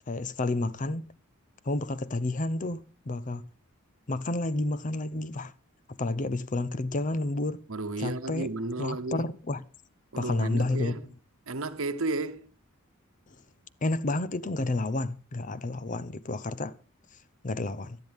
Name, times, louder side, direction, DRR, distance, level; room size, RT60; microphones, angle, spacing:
voice 1, 0.1-1.1 1.6-3.5 4.1-5.5 6.0-7.6 8.0-8.5 8.8-9.6 10.2-11.0 13.8-16.8 17.4-18.0, left 2 dB, 40° left, 0.6 m, -30 dB
voice 2, 7.7-9.3 10.1-11.0 11.5-12.5, right 2 dB, 75° right, 1.0 m, -33 dB
18.5 x 12.5 x 3.5 m
head